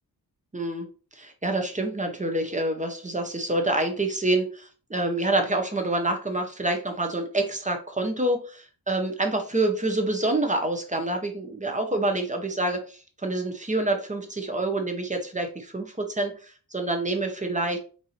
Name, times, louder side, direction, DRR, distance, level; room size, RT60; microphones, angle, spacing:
voice 1, 0.5-0.9 1.2-17.8, right 2 dB, 20° right, 4 dB, 0.8 m, -27 dB
4.7 x 2.7 x 4.1 m, 0.37 s
wide cardioid pair, 130°, 40 cm